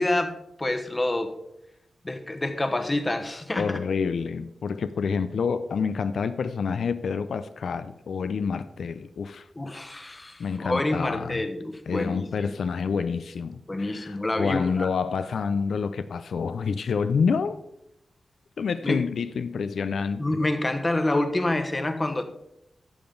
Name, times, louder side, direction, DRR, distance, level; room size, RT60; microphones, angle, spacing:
voice 1, 0.0-1.4 2.0-3.8 9.6-12.3 13.7-14.9 18.8-19.0 20.2-22.2, left 1 dB, 20° left, 7 dB, 1.0 m, -27 dB
voice 2, 3.6-9.5 10.4-11.4 11.9-17.5 18.6-20.4, left 5 dB, 85° left, 12 dB, 0.4 m, -28 dB
12.0 x 7.0 x 3.8 m, 0.81 s
wide cardioid pair, 120°, 0 cm